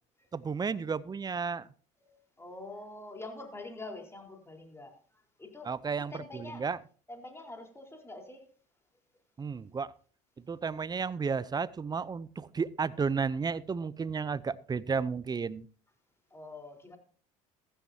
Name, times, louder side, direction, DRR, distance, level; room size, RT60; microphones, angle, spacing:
voice 1, 0.3-1.7 5.6-6.8 9.4-9.9 10.5-15.7, right 5 dB, 20° right, 19 dB, 0.7 m, -33 dB
voice 2, 2.0-5.7 6.1-6.6 7.1-8.4 16.3-17.0, left 2 dB, 15° left, 2 dB, 4.4 m, -45 dB
15.5 x 15.0 x 2.9 m, 0.41 s
hypercardioid pair, 70°, 18 cm